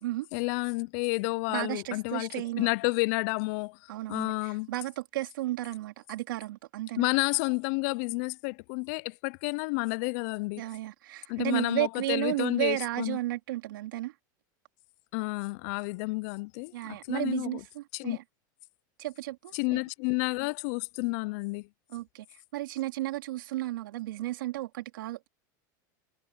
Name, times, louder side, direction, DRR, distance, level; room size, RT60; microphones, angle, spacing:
voice 1, 0.3-3.8 4.1-4.7 7.0-10.6 11.3-13.2 15.1-17.6 17.9-18.2 19.5-21.7, left 28 dB, 55° left, 0.4 m, -30 dB
voice 2, 1.5-2.7 3.9-7.1 10.6-14.1 16.7-18.2 19.0-19.8 21.9-25.3, right 16 dB, 85° right, 3.1 m, -33 dB
supercardioid pair, 145°, 11 cm